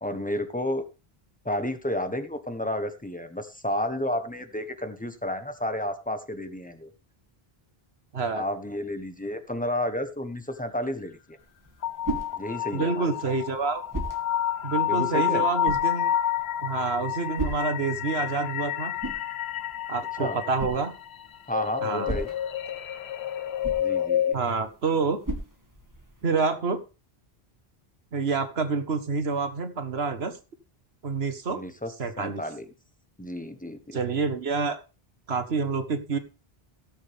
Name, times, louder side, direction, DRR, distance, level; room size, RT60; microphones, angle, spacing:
voice 1, 0.0-0.8 1.4-6.9 8.3-11.4 12.3-13.3 14.9-15.4 20.2-20.4 21.5-22.3 23.8-24.4 31.5-32.6 33.2-34.0, left 1 dB, 10° left, 8 dB, 1.3 m, -31 dB
voice 2, 8.1-8.5 12.7-13.8 14.6-16.1 16.6-18.9 19.9-20.9 21.8-22.1 24.3-25.2 26.2-26.8 28.1-30.4 31.0-31.6 32.0-32.4 33.9-34.8 35.3-36.2, right 4 dB, 80° right, 9 dB, 1.6 m, -27 dB
sound 1, 11.4-26.3, right 1 dB, 20° right, 2.0 m, -39 dB
sound 2, 11.8-24.3, left 10 dB, 85° left, 1.0 m, -29 dB
16.5 x 7.7 x 3.6 m, 0.32 s
omnidirectional pair, 1.0 m